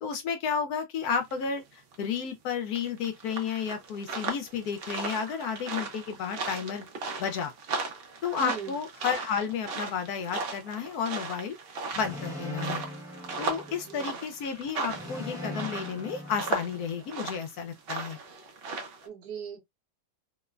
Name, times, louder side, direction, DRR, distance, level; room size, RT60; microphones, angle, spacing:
voice 1, 0.0-6.9 7.2-7.5 8.2-11.6 12.0-12.8 13.4-18.2, left 6 dB, 70° left, 1.0 m, -32 dB
sound 1, 1.3-1.6 1.9-2.2 2.7-19.1, right 4 dB, 90° right, 0.5 m, -37 dB
voice 2, 8.4-8.8 13.7-14.2 19.0-19.6, right 7 dB, 70° right, 1.0 m, -39 dB
sound 2, 11.9-14.1 14.9-17.1, left 1 dB, 5° right, 0.6 m, -40 dB
3.0 x 2.0 x 2.3 m
omnidirectional pair, 1.8 m